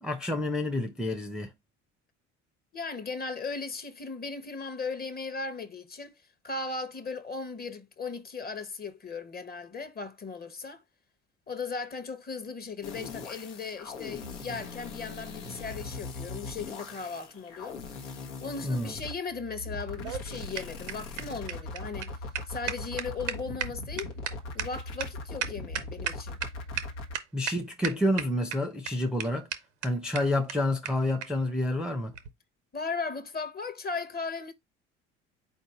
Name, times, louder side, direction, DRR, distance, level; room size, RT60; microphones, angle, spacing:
voice 1, 0.0-1.5 18.6-18.9 27.3-29.5 29.8-32.1, left 1 dB, ahead, 0.6 m, -29 dB
voice 2, 2.7-6.1 6.4-10.8 11.5-17.8 18.4-22.1 22.5-24.1 24.5-26.4 32.7-34.5, left 4 dB, 25° left, 0.9 m, -37 dB
sound 1, 12.8-27.1, left 3 dB, 85° left, 1.0 m, -40 dB
sound 2, 19.8-26.5 26.8-26.9 27.1-27.5 27.8-28.5 28.9-29.0 29.2-29.3 29.5-29.6 29.8-29.9 30.1-30.2 30.5-30.6 30.8-30.9 31.2-31.3 32.1-32.3, right 10 dB, 85° right, 0.7 m, -34 dB
4.2 x 2.6 x 4.1 m
hypercardioid pair, 65°, 35 cm